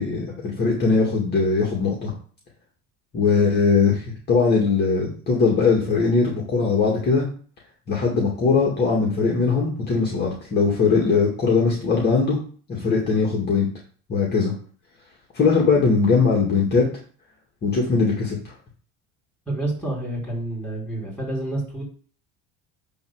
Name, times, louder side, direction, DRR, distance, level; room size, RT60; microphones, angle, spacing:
voice 1, 0.0-2.1 3.1-4.0 4.3-7.2 7.9-12.4 12.7-13.7 14.1-14.5 15.3-16.8 17.6-18.5, left 4 dB, 30° left, -3 dB, 2.2 m, -20 dB
voice 2, 19.5-21.8, right 2 dB, 5° left, -5 dB, 4.4 m, -28 dB
8.5 x 3.4 x 6.4 m, 0.42 s
cardioid pair, 145°, 31 cm